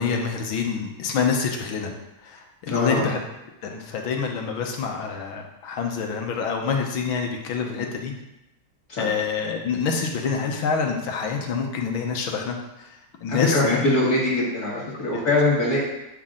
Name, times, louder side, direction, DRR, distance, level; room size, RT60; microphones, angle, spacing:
voice 1, 0.0-1.9 2.2-3.2 3.6-8.1 9.0-13.8 15.1-15.2, left 5 dB, 75° left, 2 dB, 1.8 m, -27 dB
voice 2, 2.7-3.1 7.6-7.8 8.9-9.1 13.3-15.8, left 2 dB, 50° left, -9 dB, 2.0 m, -22 dB
8.3 x 6.0 x 3.8 m, 0.94 s
omnidirectional pair, 2.2 m